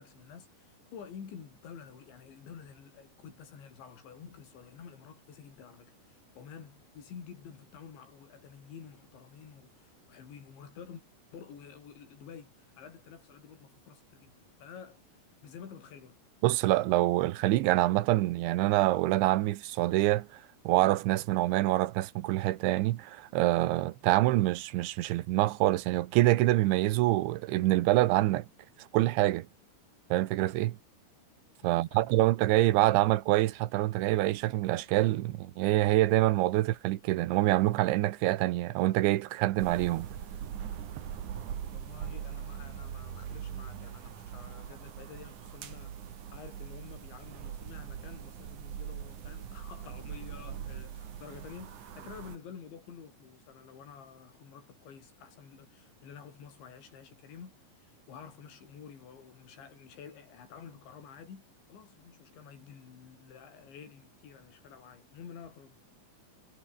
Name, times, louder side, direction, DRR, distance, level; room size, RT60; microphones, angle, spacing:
voice 1, 0.0-11.0 11.3-15.0 15.4-16.2 31.6-32.2 41.7-65.8, left 7 dB, 80° left, 6.8 m, -50 dB
voice 2, 16.4-20.3 20.6-28.5 28.8-29.5 30.1-30.8 31.6-40.1, right 17 dB, 90° right, 3.4 m, -26 dB
sound 1, 39.6-52.4, right 9 dB, 50° right, 3.0 m, -41 dB
omnidirectional pair, 5.1 m